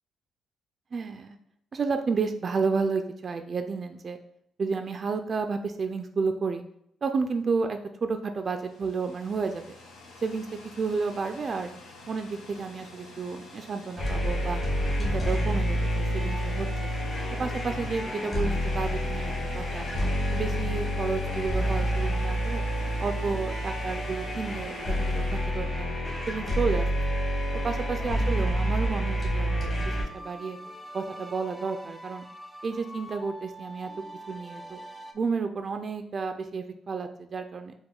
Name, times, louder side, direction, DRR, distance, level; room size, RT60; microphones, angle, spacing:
voice 1, 0.9-1.4 1.7-4.2 4.6-6.6 7.0-9.7 10.2-10.5 10.8-11.7 12.1-14.6 15.0-16.9 17.4-19.9 20.3-22.6 23.0-25.9 26.3-26.9 27.6-30.6 30.9-32.2 32.6-33.9 34.3-34.8 35.1-37.7, right 4 dB, 45° right, 7 dB, 0.3 m, -31 dB
sound 1, 8.3-26.4, left 2 dB, 90° left, 0.8 m, -48 dB
sound 2, 14.0-30.0, equal, 35° left, 1.4 m, -28 dB
sound 3, 16.2-35.1, right 1 dB, 15° left, 0.5 m, -44 dB
4.7 x 2.1 x 3.8 m, 0.73 s
cardioid pair, 90°, 0 cm